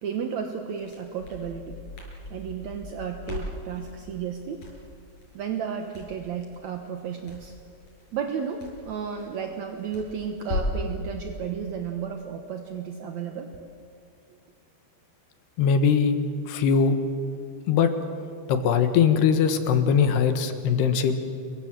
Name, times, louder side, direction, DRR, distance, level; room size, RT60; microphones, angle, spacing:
voice 1, 0.0-1.8 2.3-4.6 5.3-7.5 8.1-13.5, right 7 dB, 75° right, 5 dB, 1.7 m, -33 dB
Crackle, 0.7-10.9, left 2 dB, 50° left, 7.4 m, -38 dB
voice 2, 15.6-16.2 16.5-17.0 17.7-17.9 18.5-21.1, left 7 dB, 70° left, 8 dB, 3.3 m, -21 dB
28.0 x 23.0 x 7.6 m, 2.3 s
omnidirectional pair, 5.1 m